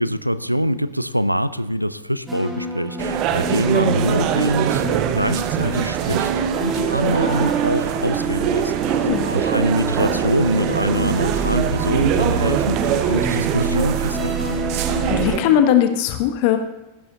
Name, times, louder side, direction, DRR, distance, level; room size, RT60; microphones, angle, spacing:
voice 1, 0.0-14.8, equal, 90° right, 15 dB, 0.4 m, -24 dB
sound 1, 2.3-15.4, right 2 dB, 10° right, 2.3 m, -28 dB
sound 2, 3.0-15.4, right 10 dB, 40° right, 0.7 m, -23 dB
Drip, 6.9-12.3 12.7-13.4, left 2 dB, 80° left, 2.6 m, -40 dB
voice 2, 15.1-16.6, left 10 dB, 45° left, 7 dB, 1.0 m, -18 dB
15.0 x 11.5 x 2.7 m, 0.95 s
figure-of-eight pair, 90°, 0 cm